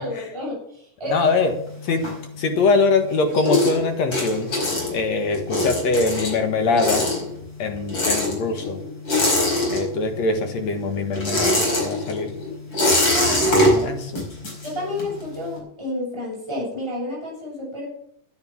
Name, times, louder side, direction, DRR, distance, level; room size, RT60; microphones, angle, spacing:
voice 1, 0.0-1.3 2.0-2.1 13.1-13.9 14.6-17.9, left 1 dB, 10° right, -5 dB, 7.4 m, -30 dB
voice 2, 1.1-1.5 1.8-2.0 2.4-4.5 4.9-7.0 7.6-8.8 9.7-12.3 13.5-14.3, left 3 dB, 60° left, 5 dB, 2.8 m, -23 dB
sound 1, 1.1-2.7 3.0-10.3 10.5-15.2, left 1 dB, 35° left, 5.6 m, -23 dB
13.0 x 10.5 x 5.9 m, 0.68 s
omnidirectional pair, 3.6 m